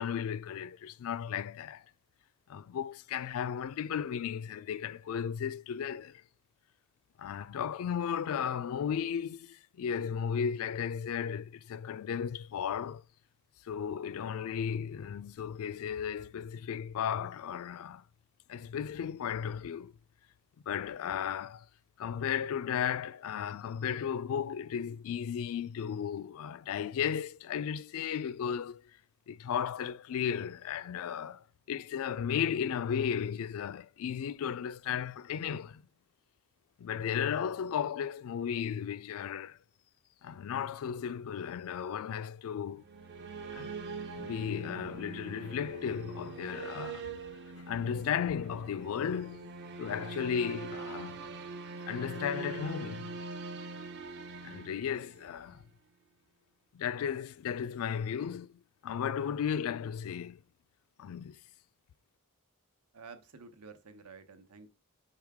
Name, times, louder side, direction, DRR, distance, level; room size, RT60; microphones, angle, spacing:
voice 1, 0.0-1.8 2.5-6.2 7.2-13.0 13.6-18.0 18.5-19.9 20.7-21.7 22.0-28.8 29.3-35.8 36.8-39.6 40.2-42.8 43.5-43.7 44.1-47.1 47.7-49.5 49.8-51.2 51.9-53.1 54.4-55.6 56.7-60.4 61.0-61.4, left 8 dB, 65° left, 0.3 m, -35 dB
sound 1, 42.7-55.5, right 4 dB, 50° right, 0.7 m, -43 dB
voice 2, 62.9-64.7, right 4 dB, 90° right, 0.9 m, -51 dB
5.6 x 4.8 x 3.5 m
head